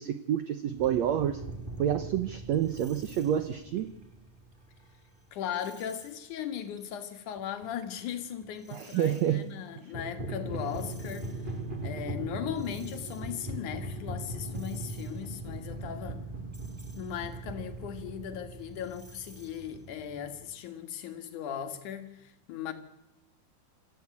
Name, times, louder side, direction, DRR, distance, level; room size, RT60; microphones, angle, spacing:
voice 1, 0.0-1.4 1.8-3.9 8.7-9.5, right 10 dB, 85° right, 1.5 m, -28 dB
sound 1, 0.7-5.0 5.5-6.1 6.5-6.9 7.4-9.2 9.8-20.5, right 2 dB, 20° right, 1.7 m, -40 dB
voice 2, 5.3-11.3 11.8-16.2 17.0-22.7, left 9 dB, 60° left, 2.9 m, -38 dB
27.0 x 14.5 x 8.4 m
omnidirectional pair, 4.4 m